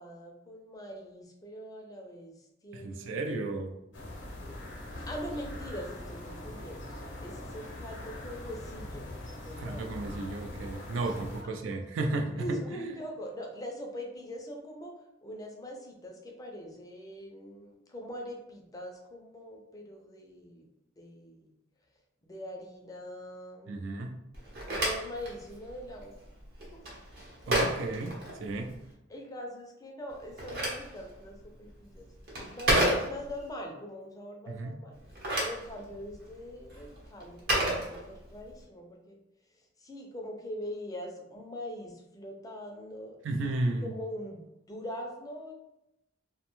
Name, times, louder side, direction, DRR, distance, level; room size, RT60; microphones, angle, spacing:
voice 1, 0.0-3.3 5.1-9.1 9.4-9.9 11.0-11.2 12.4-14.9 15.2-20.7 21.0-21.5 22.3-23.9 24.7-26.1 26.7-26.9 29.1-35.0 35.4-39.2 39.5-43.5 43.8-45.5, equal, 20° left, 1 dB, 0.4 m, -42 dB
voice 2, 2.7-3.8 9.6-12.6 23.7-24.2 27.5-28.8 34.5-34.7 43.2-43.9, right 2 dB, 70° right, 4 dB, 0.4 m, -33 dB
sound 1, 3.9-11.4, left 1 dB, 65° left, 0.6 m, -42 dB
Telephone, 24.3-28.9 30.1-33.5 34.9-38.5, right 1 dB, 55° right, 0.8 m, -32 dB
2.6 x 2.2 x 3.0 m, 0.85 s
head